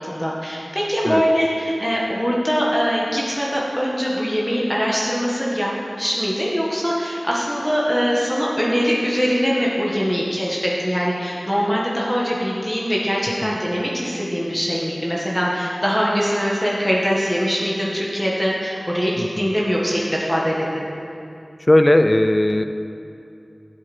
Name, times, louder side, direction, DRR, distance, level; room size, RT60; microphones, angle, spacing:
voice 1, 0.0-5.7 6.0-20.8, equal, 10° left, -5 dB, 1.7 m, -22 dB
voice 2, 19.2-19.5 21.7-22.6, left 1 dB, 35° left, 8 dB, 0.5 m, -17 dB
11.0 x 7.7 x 4.4 m, 2.6 s
wide cardioid pair, 40°, 0 cm